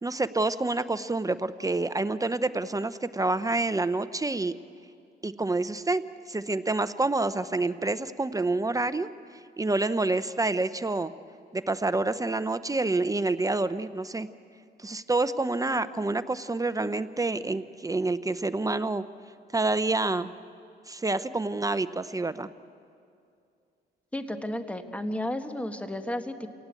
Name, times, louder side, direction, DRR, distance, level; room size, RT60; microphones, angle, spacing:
voice 1, 0.0-4.5 5.2-6.0 6.3-9.1 9.6-11.1 11.5-14.3 14.8-19.0 19.5-20.3 20.9-22.5, right 2 dB, 15° right, 13 dB, 0.7 m, -28 dB
voice 2, 24.1-26.5, left 1 dB, 5° left, 7 dB, 1.6 m, -33 dB
29.0 x 18.0 x 8.4 m, 2.4 s
cardioid pair, 90°, 20 cm